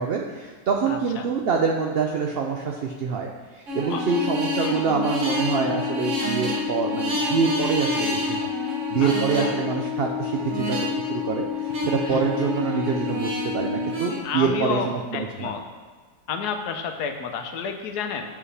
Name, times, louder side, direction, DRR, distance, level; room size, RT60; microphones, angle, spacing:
voice 1, 0.0-3.3 3.7-8.5 8.9-15.5, right 5 dB, 85° right, 1 dB, 0.5 m, -25 dB
voice 2, 0.9-1.3 3.9-4.0 9.0-9.6 12.0-12.3 14.2-15.6 16.3-18.2, left 6 dB, 90° left, 6 dB, 1.2 m, -30 dB
sound 1, 3.7-14.2, equal, 55° right, 1.4 m, -30 dB
Organ, 3.8-14.6, left 10 dB, 35° left, 0.6 m, -31 dB
8.1 x 4.9 x 3.3 m, 1.4 s
omnidirectional pair, 1.6 m